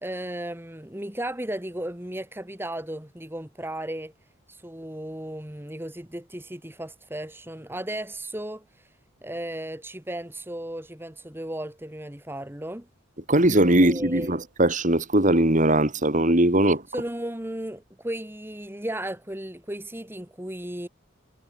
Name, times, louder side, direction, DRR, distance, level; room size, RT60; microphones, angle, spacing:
voice 1, 0.0-4.1 4.5-8.9 9.2-12.9 13.8-14.4 16.9-20.9, right 1 dB, 10° right, 2.2 m, -35 dB
voice 2, 13.3-16.8, right 1 dB, 40° right, 2.9 m, -20 dB
head